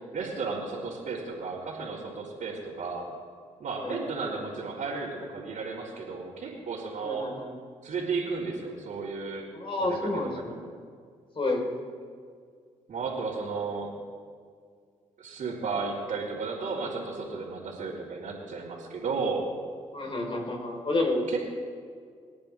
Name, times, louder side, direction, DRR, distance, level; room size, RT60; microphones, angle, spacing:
voice 1, 0.1-3.1 3.6-7.3 7.8-9.5 9.8-10.5 12.9-13.9 15.2-19.4 21.3-21.4, right 4 dB, 65° right, -8 dB, 3.8 m, -33 dB
voice 2, 7.0-7.5 9.5-10.6 11.4-11.6 19.9-21.3, left 2 dB, 40° left, 1 dB, 4.2 m, -29 dB
29.0 x 10.0 x 3.5 m, 2.1 s
supercardioid pair, 50°, 14 cm